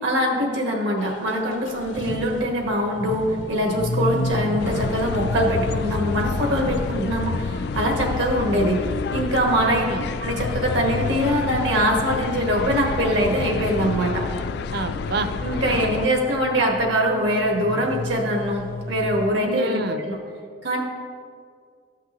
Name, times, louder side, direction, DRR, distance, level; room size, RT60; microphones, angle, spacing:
voice 1, 0.0-8.9 9.1-9.8 10.2-14.3 15.4-20.2 20.6-20.8, equal, 75° right, 1 dB, 1.5 m, -23 dB
sound 1, 1.0-19.3, left 1 dB, 85° left, 0.7 m, -34 dB
sound 2, 4.6-16.1, left 5 dB, 60° left, 0.3 m, -29 dB
voice 2, 9.7-10.1 14.7-15.3 15.7-15.8 19.4-20.0, right 3 dB, 55° right, 8 dB, 0.5 m, -29 dB
14.0 x 5.8 x 3.1 m, 2.2 s
head